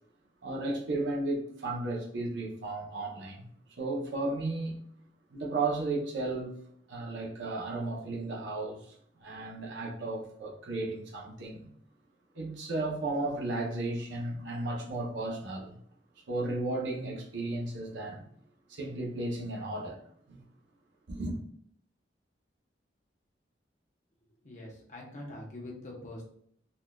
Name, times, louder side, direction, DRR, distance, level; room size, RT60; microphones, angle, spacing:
voice 1, 0.4-3.4 3.8-4.8 5.3-6.5 6.9-11.7 12.3-15.8 16.3-18.3 18.7-20.0 20.3-20.4 21.1-21.4, right 2 dB, 75° right, 0.7 m, -34 dB
voice 2, 24.4-26.2, left 1 dB, 40° left, 0.9 m, -44 dB
3.7 x 2.4 x 2.2 m
head